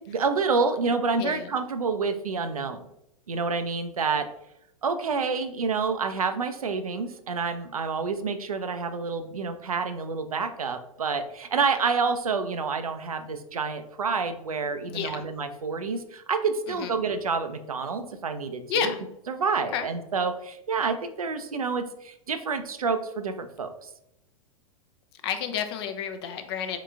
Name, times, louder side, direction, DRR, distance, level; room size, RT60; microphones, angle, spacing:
voice 1, 0.1-2.9 3.3-4.3 4.8-18.9 19.3-23.9, right 4 dB, 75° right, 9 dB, 0.5 m, -28 dB
voice 2, 14.9-15.2 16.7-16.9 18.7-19.0 19.7-19.9 25.2-26.8, left 8 dB, 45° left, 7 dB, 0.6 m, -30 dB
4.5 x 3.7 x 2.4 m, 0.82 s
figure-of-eight pair, 95°, 19 cm